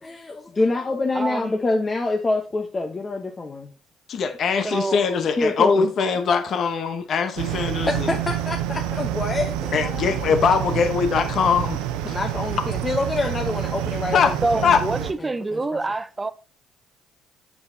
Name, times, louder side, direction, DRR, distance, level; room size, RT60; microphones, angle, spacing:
voice 1, 0.0-3.7 4.6-4.7 5.4-5.9 7.7-10.1 12.1-15.1 15.5-15.8, left 2 dB, 30° left, 1.0 m, -26 dB
voice 2, 1.1-1.6 4.6-5.0 14.4-16.3, right 2 dB, 25° right, 0.7 m, -26 dB
voice 3, 4.1-8.1 9.7-12.1 14.1-14.3 14.6-14.8, left 6 dB, 60° left, 1.0 m, -22 dB
sound 1, 7.4-15.1, right 12 dB, 85° right, 0.6 m, -28 dB
7.8 x 7.1 x 2.8 m
supercardioid pair, 65°, 0 cm